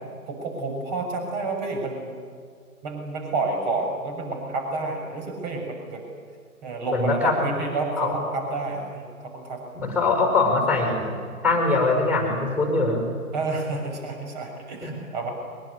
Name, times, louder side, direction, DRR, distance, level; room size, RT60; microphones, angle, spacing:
voice 1, 0.3-2.1 2.8-6.0 6.6-9.6 13.3-15.3, right 3 dB, 30° right, 3 dB, 6.9 m, -29 dB
voice 2, 6.9-7.4 8.0-8.2 9.7-11.1 11.4-13.1 14.8-15.0, left 3 dB, ahead, 2 dB, 5.1 m, -22 dB
22.5 x 21.5 x 9.9 m, 2.1 s
figure-of-eight pair, 145°, 45 cm